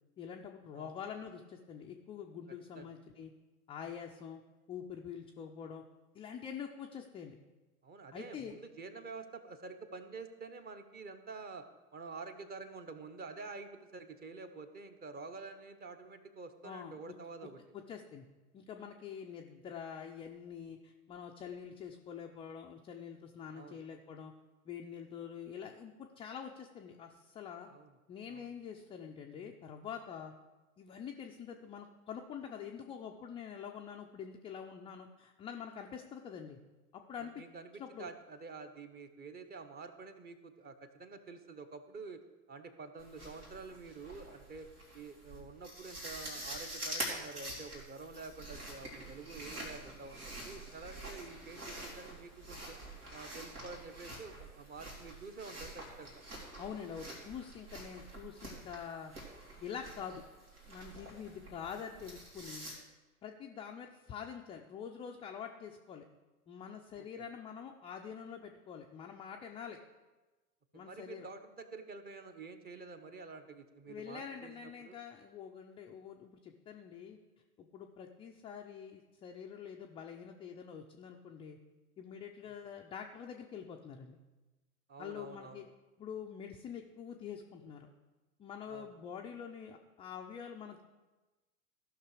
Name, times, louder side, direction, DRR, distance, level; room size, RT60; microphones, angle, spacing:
voice 1, 0.2-3.3 3.7-4.4 4.7-5.8 6.1-7.4 8.1-8.5 16.6-17.1 17.7-18.2 18.5-24.3 24.6-27.7 28.1-30.3 30.8-36.6 36.9-37.4 37.8-38.1 56.6-59.1 59.6-60.2 60.7-62.7 63.2-66.0 66.5-69.8 70.7-71.3 73.9-77.2 77.6-81.6 82.0-84.2 85.0-85.7 86.0-87.9 88.4-90.8, left 7 dB, 15° left, 1 dB, 0.4 m, -46 dB
voice 2, 7.8-11.7 11.9-17.6 23.5-23.8 27.7-27.9 28.3-28.5 37.2-42.2 42.5-44.7 44.9-52.8 53.1-56.2 67.0-67.3 70.7-75.0 84.9-85.6 88.7-88.9, right 4 dB, 20° right, 8 dB, 0.9 m, -48 dB
sound 1, 43.0-62.7, right 1 dB, 80° right, 3.1 m, -46 dB
14.5 x 5.9 x 4.8 m, 1.2 s
figure-of-eight pair, 90°, 44 cm